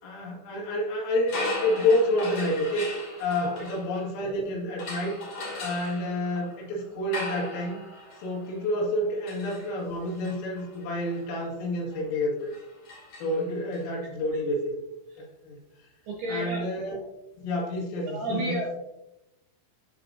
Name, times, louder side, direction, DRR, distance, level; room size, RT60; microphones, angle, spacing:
voice 1, 0.0-2.9 3.2-5.2 5.6-7.8 8.2-12.5 13.2-14.7 15.2-15.6 16.3-17.0 17.4-18.8, left 1 dB, 75° left, -3 dB, 4.7 m, -29 dB
sound 1, 1.2-4.3 4.8-13.8, left 2 dB, 45° left, 3.3 m, -39 dB
voice 2, 16.1-16.6 18.1-18.8, right 1 dB, 70° right, -2 dB, 2.5 m, -30 dB
14.0 x 5.1 x 2.7 m, 0.90 s
omnidirectional pair, 5.9 m